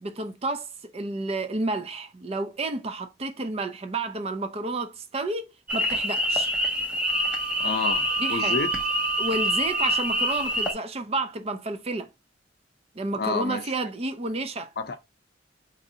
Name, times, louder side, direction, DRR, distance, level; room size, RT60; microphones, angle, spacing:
voice 1, 0.0-6.5 8.2-8.6 9.2-12.1 12.9-14.7, right 2 dB, 30° right, 0.5 m, -31 dB
sound 1, 5.7-10.7, left 1 dB, 5° right, 0.8 m, -26 dB
Wind instrument woodwind instrument, 7.1-10.7, right 12 dB, 90° right, 0.7 m, -33 dB
voice 2, 7.6-8.7 13.2-13.7 14.8-15.0, left 4 dB, 55° left, 0.6 m, -29 dB
4.0 x 2.6 x 2.7 m
head